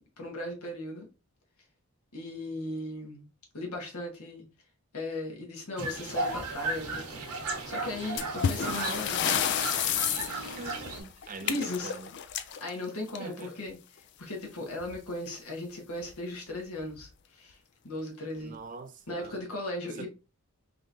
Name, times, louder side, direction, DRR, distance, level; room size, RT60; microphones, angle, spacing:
voice 1, 0.2-1.1 2.1-3.3 3.5-4.4 4.9-9.4 11.2-11.9 12.4-17.6 17.8-18.5 19.1-20.1, left 2 dB, 80° left, 1.3 m, -37 dB
sound 1, 5.8-11.0, right 2 dB, 85° right, 1.2 m, -35 dB
sound 2, 8.2-13.6 14.8-15.0 15.3-15.4 16.0-16.1 16.8-17.1, left 9 dB, 50° left, 0.3 m, -31 dB
voice 2, 8.6-9.1 10.6-12.1 13.2-13.6 18.4-19.4 19.8-20.1, right 4 dB, 35° right, 0.4 m, -42 dB
3.7 x 3.1 x 2.6 m
head